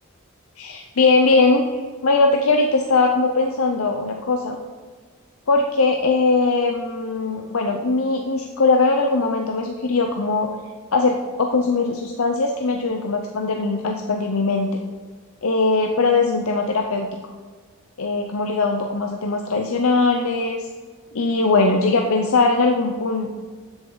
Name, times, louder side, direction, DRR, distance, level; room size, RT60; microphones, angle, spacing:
voice 1, 0.6-4.6 5.5-10.5 10.9-14.8 15.4-17.1 18.0-20.6 21.1-23.3, left 3 dB, 80° left, 3 dB, 0.7 m, -20 dB
12.5 x 8.1 x 3.9 m, 1.5 s
head